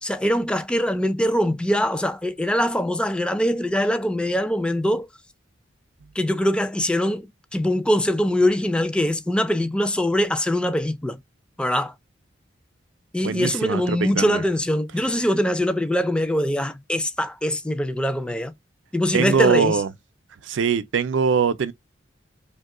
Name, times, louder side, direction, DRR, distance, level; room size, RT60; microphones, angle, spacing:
voice 1, 0.0-5.1 6.2-7.3 7.5-11.2 11.6-11.9 13.1-18.5 18.9-19.8, equal, 5° left, 0.3 m, -23 dB
voice 2, 13.2-14.4 19.1-19.9 20.4-21.7, right 6 dB, 75° right, 0.4 m, -22 dB
2.9 x 2.2 x 3.6 m
head